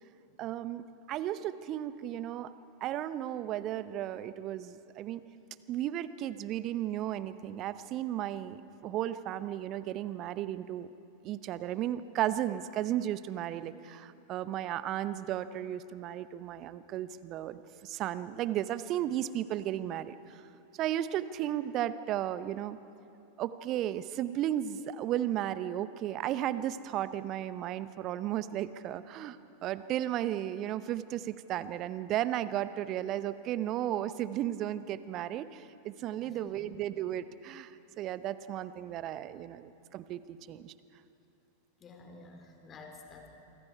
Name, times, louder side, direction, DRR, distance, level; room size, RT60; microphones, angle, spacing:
voice 1, 0.4-2.5 2.8-5.2 5.7-10.9 11.2-20.4 20.8-22.8 23.4-29.4 29.6-37.7 38.0-40.2 40.5-40.7, right 12 dB, 35° right, 14 dB, 0.8 m, -34 dB
voice 2, 36.2-36.7 41.8-43.3, left 3 dB, 25° left, 3 dB, 3.8 m, -51 dB
28.0 x 25.0 x 4.8 m, 2.9 s
figure-of-eight pair, 90°, 0 cm